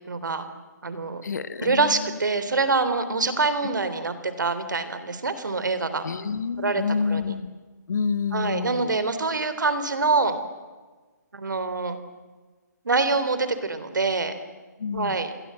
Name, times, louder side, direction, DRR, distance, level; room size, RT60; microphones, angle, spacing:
voice 1, 0.1-0.5 0.8-1.2 1.6-6.0 6.6-6.8 7.1-7.2 8.3-10.4 11.3-12.0 12.9-14.3 14.9-15.3, right 3 dB, 85° right, 11 dB, 3.4 m, -25 dB
voice 2, 1.2-2.2 6.0-7.5 7.9-9.0 14.8-15.2, left 5 dB, 65° left, 13 dB, 1.7 m, -28 dB
28.5 x 22.0 x 7.6 m, 1.3 s
hypercardioid pair, 160°, 10 cm